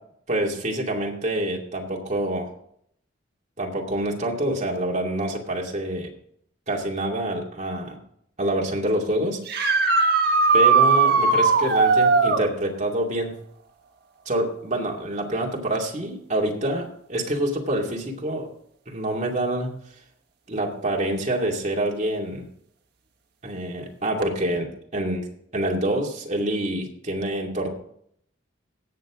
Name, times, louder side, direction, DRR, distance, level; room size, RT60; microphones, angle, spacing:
voice 1, 0.3-2.5 3.6-6.1 6.7-8.0 8.4-9.4 10.5-13.3 14.3-18.5 18.9-19.8 20.5-22.4 23.4-25.3 25.5-27.7, right 1 dB, 40° right, -1 dB, 2.5 m, -26 dB
sound 1, 9.5-12.4 15.8-15.9 17.9-18.0 24.2-24.3, right 4 dB, 55° right, 1.4 m, -18 dB
17.0 x 6.9 x 3.8 m, 0.67 s
head